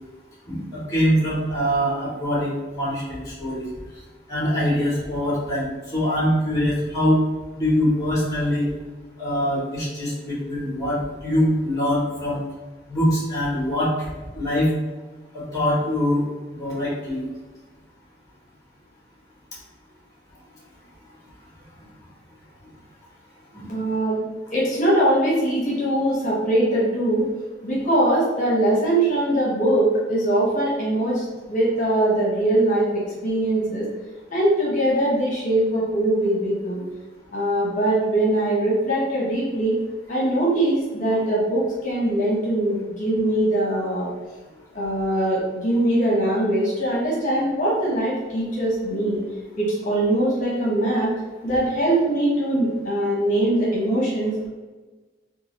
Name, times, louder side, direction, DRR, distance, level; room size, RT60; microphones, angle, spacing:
voice 1, 0.5-3.6 4.3-5.7 5.9-7.2 7.5-8.7 9.2-12.4 12.9-14.1 14.4-14.7 15.3-16.2 16.6-17.2 23.5-23.8, equal, 20° left, -6 dB, 1.0 m, -23 dB
voice 2, 23.7-24.2 24.5-27.2 27.6-33.8 34.3-36.8 37.3-39.8 40.1-44.1 44.7-49.2 49.6-51.1 51.4-54.5, right 1 dB, 45° left, -6 dB, 1.0 m, -22 dB
3.6 x 2.3 x 3.0 m, 1.3 s
head